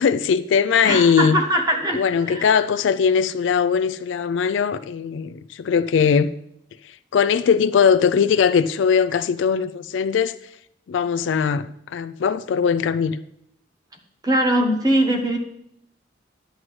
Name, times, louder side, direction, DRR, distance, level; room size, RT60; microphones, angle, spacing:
voice 1, 0.0-1.4 1.9-6.3 7.1-10.4 10.9-13.2, left 6 dB, 85° left, 13 dB, 0.3 m, -20 dB
voice 2, 0.8-2.5 14.2-15.4, right 1 dB, 20° right, 3 dB, 1.0 m, -21 dB
10.5 x 7.8 x 3.2 m, 0.76 s
head